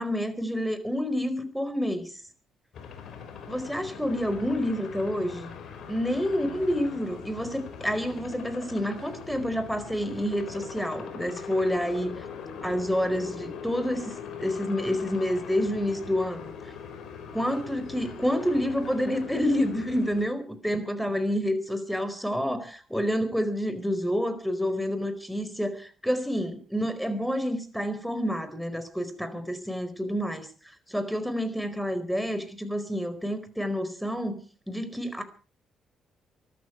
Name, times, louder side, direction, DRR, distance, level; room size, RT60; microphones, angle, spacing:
voice 1, 0.0-2.2 3.5-5.5 5.9-12.2 12.6-16.5 17.3-30.5 30.9-34.4 34.7-35.2, equal, ahead, 4.6 m, -28 dB
sound 1, 2.7-20.2, left 6 dB, 65° left, 5.2 m, -41 dB
23.5 x 13.0 x 4.7 m
hypercardioid pair, 45°, 0 cm